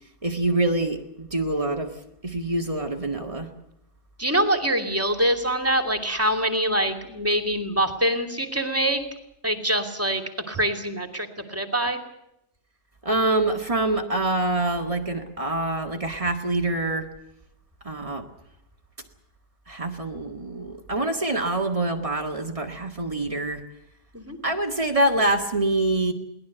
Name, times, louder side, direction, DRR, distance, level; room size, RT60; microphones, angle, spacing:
voice 1, 0.2-1.9 2.2-3.5 13.0-17.1 17.8-18.2 19.7-23.6 24.4-26.1, right 2 dB, 55° right, 3 dB, 0.3 m, -25 dB
voice 2, 4.2-9.0 9.4-12.0 24.1-24.4, right 1 dB, 5° right, 6 dB, 2.0 m, -24 dB
22.5 x 18.5 x 8.1 m, 0.84 s
omnidirectional pair, 3.9 m